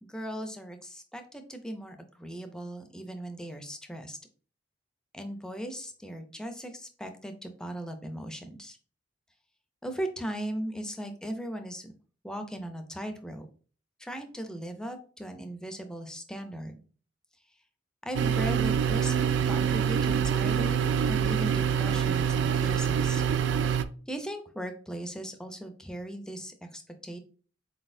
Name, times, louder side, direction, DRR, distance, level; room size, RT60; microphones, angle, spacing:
voice 1, 0.0-4.2 5.1-8.8 9.8-11.9 12.2-13.5 14.0-16.7 18.0-23.2 24.1-27.2, right 1 dB, 5° left, 6 dB, 0.5 m, -38 dB
sound 1, 18.1-23.8, right 7 dB, 70° right, 0.3 m, -26 dB
4.1 x 4.0 x 2.6 m, 0.41 s
head